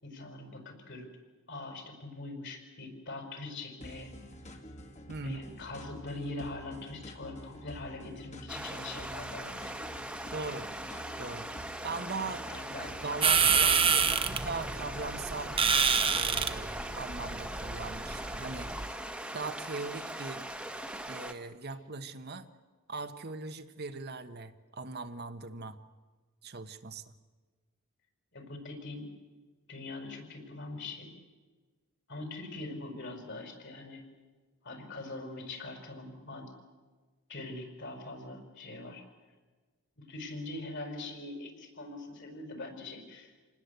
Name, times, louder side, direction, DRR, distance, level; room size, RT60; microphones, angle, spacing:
voice 1, 0.0-1.1 1.5-4.1 5.2-9.6 12.5-12.9 28.3-29.1 29.7-31.1 32.1-34.0 34.6-36.5 37.3-39.0 40.0-43.3, left 2 dB, 60° left, 5 dB, 5.3 m, -42 dB
sound 1, 3.8-14.1, equal, 35° left, 2.1 m, -48 dB
voice 2, 5.1-5.4 10.3-10.7 11.2-11.5 11.8-12.4 12.7-15.6 16.1-18.7 19.3-20.4 21.1-22.5 22.9-25.8 26.4-27.0, right 3 dB, 50° right, 9 dB, 1.2 m, -40 dB
sound 2, 8.5-21.3, right 1 dB, 5° right, 1.4 m, -40 dB
sound 3, 13.2-18.9, right 6 dB, 25° right, 1.2 m, -28 dB
28.0 x 19.5 x 8.2 m, 1.3 s
head